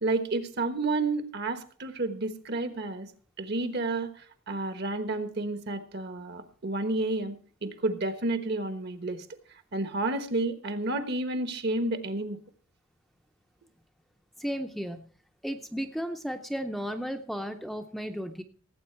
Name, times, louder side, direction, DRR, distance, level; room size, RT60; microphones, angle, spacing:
voice 1, 0.0-3.1 3.4-9.3 9.7-12.4, right 2 dB, 50° right, 10 dB, 1.2 m, -30 dB
voice 2, 14.4-15.1 15.4-18.4, equal, ahead, 6 dB, 0.6 m, -34 dB
17.5 x 8.3 x 4.5 m, 0.43 s
head